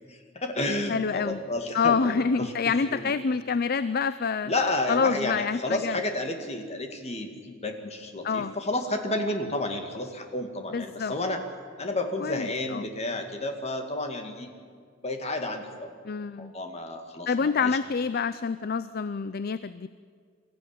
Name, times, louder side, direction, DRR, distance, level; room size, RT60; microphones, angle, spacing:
voice 1, 0.1-3.1 4.4-11.4 11.8-14.5 15.0-15.9 16.4-17.8, left 2 dB, 30° left, 5 dB, 2.2 m, -31 dB
voice 2, 0.9-1.4 1.7-4.5 4.9-6.0 8.2-8.5 10.7-11.1 12.2-12.9 16.0-16.5 17.3-19.9, left 5 dB, 50° left, 15 dB, 0.5 m, -27 dB
23.5 x 14.5 x 9.9 m, 2.1 s
head